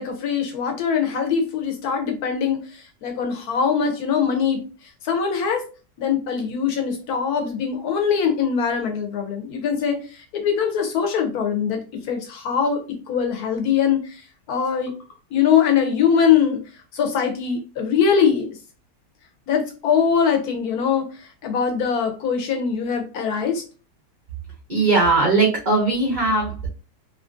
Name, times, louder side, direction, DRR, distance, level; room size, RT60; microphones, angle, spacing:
voice 1, 0.0-4.6 5.0-5.6 6.0-11.8 12.1-14.2 14.5-14.9 15.3-16.6 16.9-18.6 19.5-23.6, left 7 dB, 70° left, 4 dB, 1.1 m, -22 dB
voice 2, 24.7-26.7, right 3 dB, 75° right, -3 dB, 0.4 m, -19 dB
3.0 x 2.4 x 2.5 m, 0.34 s
omnidirectional pair, 1.8 m